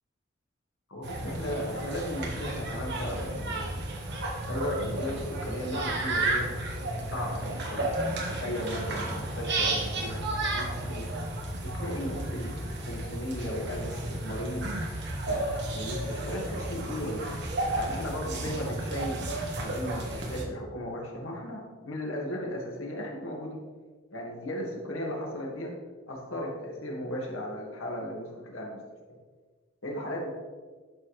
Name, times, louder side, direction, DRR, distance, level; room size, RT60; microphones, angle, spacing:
voice 1, 0.9-3.8 4.5-6.5 7.1-10.2 10.5-11.1 11.6-14.7 15.3-17.4 17.7-19.3 19.6-23.6 24.1-25.8 26.1-28.8 29.1-29.2 29.8-30.3, equal, 85° left, -2 dB, 2.1 m, -36 dB
sound 1, 1.0-20.4, right 2 dB, 60° right, 1.4 m, -33 dB
11.0 x 6.0 x 3.3 m, 1.4 s
head